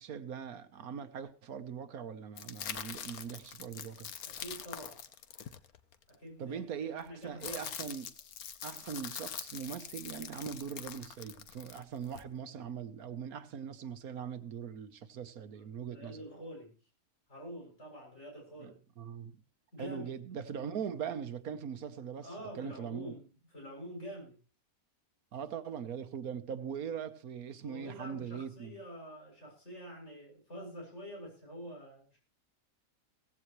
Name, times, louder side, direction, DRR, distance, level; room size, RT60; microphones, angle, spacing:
voice 1, 0.0-4.1 6.4-8.1 8.6-16.2 18.6-18.7 19.0-19.4 19.8-22.3 22.6-23.1 25.3-28.8, right 7 dB, 80° right, 1.5 m, -41 dB
sound 1, 2.4-6.1 7.0-12.2, left 9 dB, 80° left, 1.4 m, -44 dB
voice 2, 4.2-5.0 6.1-6.6 7.0-7.7 15.5-16.8 17.3-18.8 19.7-20.1 22.2-24.4 27.6-32.2, equal, 50° left, 7.6 m, -47 dB
17.0 x 15.0 x 3.1 m
omnidirectional pair, 1.5 m